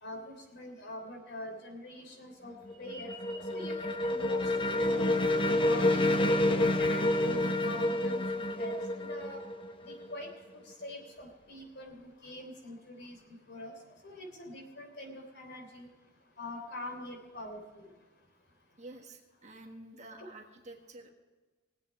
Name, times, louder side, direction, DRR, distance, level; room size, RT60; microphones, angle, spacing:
voice 1, 0.0-2.5 2.8-5.2 5.6-9.4 9.8-10.3 10.8-13.2 13.5-13.7 14.0-15.9 16.4-17.9, left 1 dB, 55° left, 2 dB, 3.5 m, -44 dB
sound 1, 2.5-10.3, left 1 dB, 25° left, 0.8 m, -29 dB
voice 2, 18.8-21.1, right 2 dB, 35° right, 2 dB, 1.6 m, -50 dB
20.5 x 8.4 x 4.8 m, 1.3 s
head